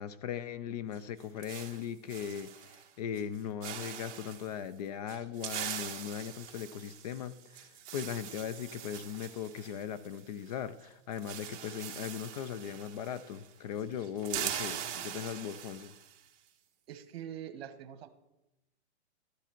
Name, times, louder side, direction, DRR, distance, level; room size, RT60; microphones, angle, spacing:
voice 1, 0.0-15.9, left 9 dB, 35° left, 0.5 m, -39 dB
sound 1, 0.9-2.9 3.2-3.4 3.6-4.5 5.1-10.5 10.8-10.9 11.1-13.5 13.8-16.2, right 10 dB, 25° right, 1.3 m, -42 dB
voice 2, 16.9-18.1, right 10 dB, 60° right, 1.2 m, -44 dB
13.0 x 9.9 x 4.4 m
hypercardioid pair, 150°, 34 cm